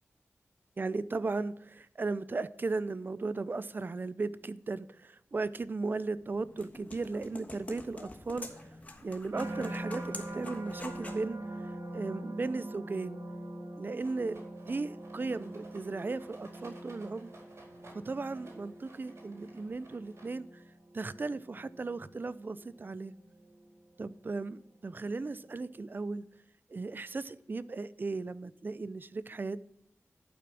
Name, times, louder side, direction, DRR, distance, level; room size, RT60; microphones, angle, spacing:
voice 1, 0.8-8.6 9.0-11.4 11.9-13.2 13.8-17.3 18.0-20.5 20.9-23.1 24.0-26.2 26.7-29.6, right 3 dB, 40° right, 0.5 m, -36 dB
sound 1, 6.1-11.3, left 2 dB, 30° left, 1.4 m, -47 dB
sound 2, 9.3-24.5 25.0-25.5, right 1 dB, 80° right, 1.6 m, -44 dB
Rattle, 13.9-20.6, right 2 dB, 60° right, 4.4 m, -56 dB
11.5 x 6.0 x 6.1 m
wide cardioid pair, 110°, 5 cm